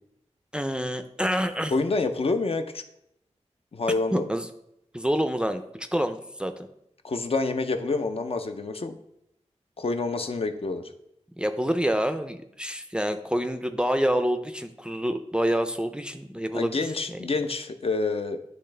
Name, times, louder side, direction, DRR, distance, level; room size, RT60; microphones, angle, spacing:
voice 1, 0.5-1.7 4.1-4.5 4.9-6.7 11.3-16.7 17.1-17.2, equal, 10° right, 8 dB, 0.4 m, -27 dB
voice 2, 1.7-2.8 3.7-4.3 7.0-9.0 9.8-10.9 16.5-18.4, left 3 dB, 55° left, 7 dB, 0.5 m, -27 dB
10.0 x 3.4 x 3.3 m, 0.78 s
wide cardioid pair, 100°, 12 cm